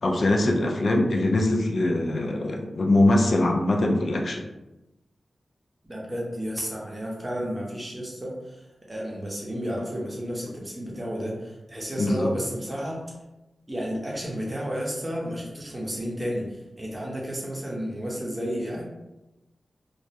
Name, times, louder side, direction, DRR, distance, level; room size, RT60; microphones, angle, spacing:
voice 1, 0.0-4.4 12.0-12.3, left 1 dB, 65° left, 1 dB, 0.3 m, -22 dB
voice 2, 5.9-13.0 13.7-18.8, equal, 20° right, -4 dB, 0.7 m, -32 dB
2.2 x 2.0 x 2.7 m, 0.98 s
wide cardioid pair, 80°, 0 cm